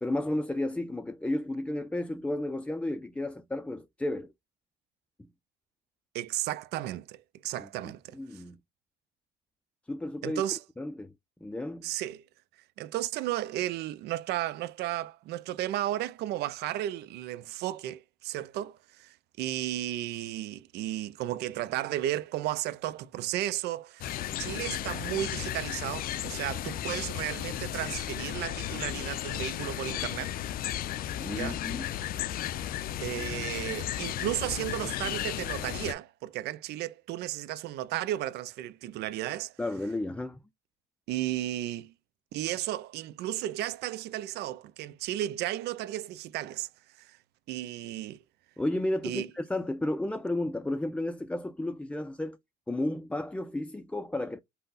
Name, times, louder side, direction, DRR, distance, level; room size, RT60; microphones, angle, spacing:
voice 1, 0.0-4.3 7.6-7.7 8.1-8.6 9.9-10.4 10.8-11.1 11.4-11.9 31.2-31.9 39.6-40.4 48.6-52.4 52.7-54.4, left 1 dB, 5° left, 0.4 m, -32 dB
voice 2, 6.1-8.4 10.2-10.6 11.8-12.2 12.8-30.4 31.3-31.6 33.0-39.5 41.1-41.9 42.3-46.7 47.0-47.2 47.5-48.2 49.0-49.3, right 14 dB, 80° right, 0.6 m, -34 dB
sound 1, 24.0-35.9, left 12 dB, 60° left, 0.5 m, -34 dB
5.7 x 2.1 x 4.0 m
cardioid pair, 110°, 17 cm